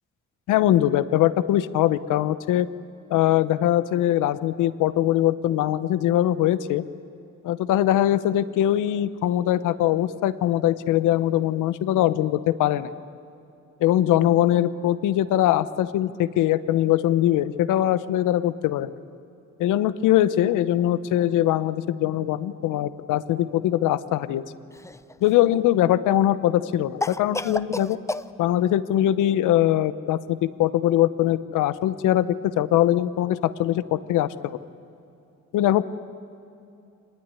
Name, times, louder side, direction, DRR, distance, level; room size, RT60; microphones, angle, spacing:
voice 1, 0.5-2.7 3.1-6.8 7.4-12.9 13.8-18.9 19.6-24.4 25.2-28.0 28.4-34.6 35.5-35.8, left 13 dB, 90° left, 15 dB, 0.9 m, -22 dB
Cough, 24.7-25.5 27.0-28.3, left 2 dB, 10° left, 0.6 m, -30 dB
24.5 x 20.0 x 9.7 m, 2.7 s
cardioid pair, 90°, 30 cm